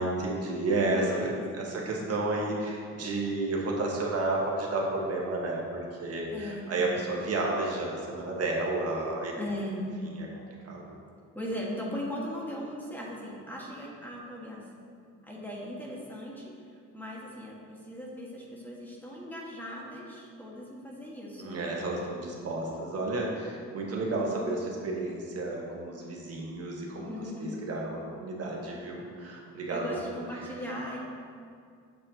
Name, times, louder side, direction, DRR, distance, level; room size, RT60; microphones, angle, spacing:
voice 1, 0.0-9.3 10.1-10.8 21.4-27.1 27.4-29.8 30.1-30.5, right 2 dB, 55° right, -2 dB, 1.4 m, -31 dB
voice 2, 0.8-1.9 6.3-6.8 9.4-9.9 11.3-14.8 15.2-16.5 16.9-21.8 24.1-24.5 26.9-27.6 29.7-31.0, left 1 dB, 5° left, -4 dB, 1.5 m, -39 dB
8.4 x 7.1 x 2.8 m, 2.3 s
cardioid pair, 90°, 30 cm